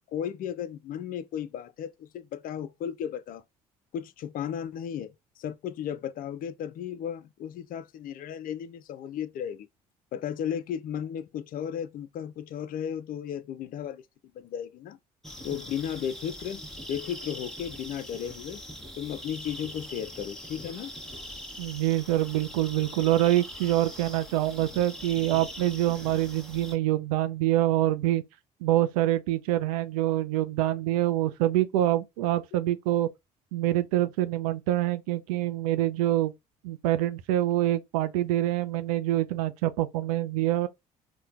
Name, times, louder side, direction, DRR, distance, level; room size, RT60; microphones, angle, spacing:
voice 1, 0.0-3.4 3.9-9.7 10.1-14.0 14.3-15.0 15.4-16.6 16.9-18.6 19.0-20.9, left 9 dB, 45° left, 0.4 m, -35 dB
sound 1, 15.2-26.8, equal, ahead, 1.0 m, -42 dB
voice 2, 21.6-28.2 28.6-33.1 33.5-36.3 36.6-40.7, right 14 dB, 70° right, 0.5 m, -26 dB
4.3 x 2.2 x 2.4 m
figure-of-eight pair, 55°, 19 cm